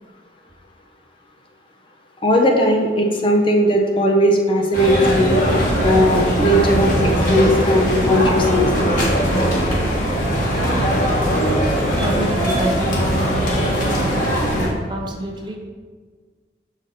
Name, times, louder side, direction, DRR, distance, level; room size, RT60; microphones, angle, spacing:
voice 1, 2.2-5.4 5.8-6.9 7.3-8.7, equal, 30° left, 1 dB, 0.8 m, -17 dB
sound 1, 4.7-14.7, equal, 50° left, 1.5 m, -19 dB
voice 2, 12.0-14.3 14.9-15.6, right 1 dB, 25° right, 1 dB, 0.7 m, -28 dB
7.1 x 5.0 x 4.2 m, 1.5 s
head